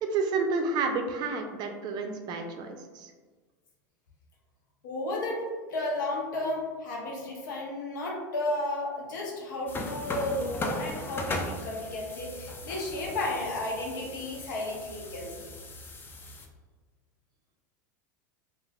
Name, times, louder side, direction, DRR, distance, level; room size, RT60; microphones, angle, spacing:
voice 1, 0.0-3.1, right 4 dB, 45° right, 5 dB, 0.4 m, -30 dB
voice 2, 4.8-5.4 5.7-15.5, left 1 dB, 75° left, -2 dB, 0.8 m, -33 dB
sound 1, 9.7-16.5, left 2 dB, 20° left, 0.4 m, -38 dB
3.2 x 2.4 x 2.3 m, 1.4 s
hypercardioid pair, 95°, 10 cm